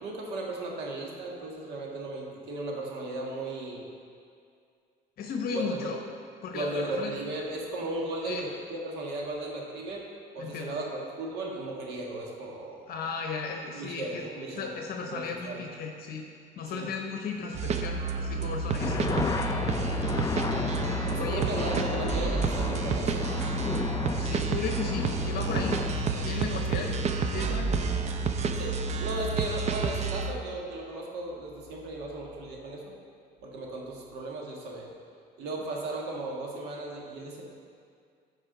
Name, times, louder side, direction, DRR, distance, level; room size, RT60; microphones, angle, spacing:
voice 1, 0.0-3.8 5.5-5.9 6.5-10.1 10.3-12.8 13.7-14.7 15.0-15.6 16.7-16.9 21.0-23.5 26.7-26.9 28.6-32.8 33.4-34.9 35.4-37.4, right 2 dB, 85° right, -1 dB, 1.6 m, -36 dB
voice 2, 5.2-6.0 6.4-7.2 8.2-8.5 10.4-10.8 12.9-14.2 14.5-16.2 16.6-19.3 21.1-21.4 24.2-25.8 26.1-27.0 27.3-27.8, left 5 dB, 65° left, 2 dB, 0.8 m, -35 dB
sound 1, 17.5-30.3, right 5 dB, 40° right, 0.5 m, -30 dB
sound 2, 18.8-29.5, left 5 dB, 20° left, 0.3 m, -34 dB
14.0 x 4.8 x 3.9 m, 2.3 s
cardioid pair, 110°, 17 cm